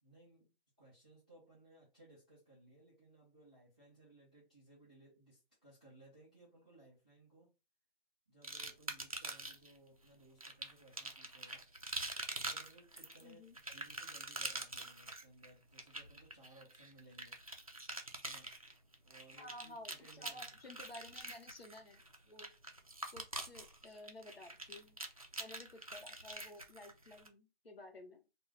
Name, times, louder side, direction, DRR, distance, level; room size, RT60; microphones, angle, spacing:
voice 1, 0.0-7.5 8.3-11.7 12.4-17.4 18.2-18.5 19.0-20.6, right 2 dB, 10° left, 0.7 m, -62 dB
sound 1, 8.4-9.7 10.4-27.3, right 2 dB, 40° right, 0.4 m, -45 dB
voice 2, 13.2-13.6 19.4-22.5 23.1-25.0 25.4-28.2, left 1 dB, 75° left, 1.1 m, -54 dB
2.5 x 2.3 x 3.9 m
figure-of-eight pair, 165°, 30 cm